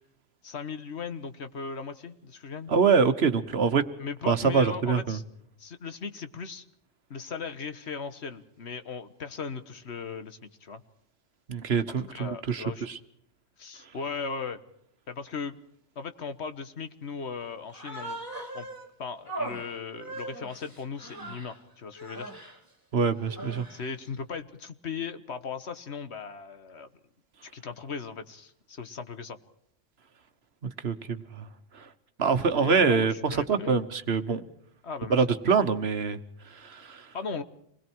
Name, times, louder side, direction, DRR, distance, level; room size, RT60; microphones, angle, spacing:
voice 1, 0.4-2.7 4.0-5.2 5.6-6.6 7.1-10.8 11.9-12.9 13.6-14.6 15.1-15.6 15.9-18.2 18.5-18.7 19.0-22.3 23.7-26.9 27.5-29.4 32.6-33.8 34.8-35.3 37.1-37.4, left 5 dB, 65° left, 10 dB, 1.6 m, -37 dB
voice 2, 2.7-3.9 4.3-5.2 11.5-13.0 22.9-23.7 30.6-31.5 31.7-31.9 32.2-34.4 35.1-37.1, right 5 dB, 60° right, 11 dB, 1.4 m, -25 dB
Human voice, 17.7-18.9 19.2-21.6 22.0-22.6 23.2-23.9, right 2 dB, 15° right, 2.9 m, -39 dB
27.0 x 20.5 x 4.6 m, 0.71 s
omnidirectional pair, 1.2 m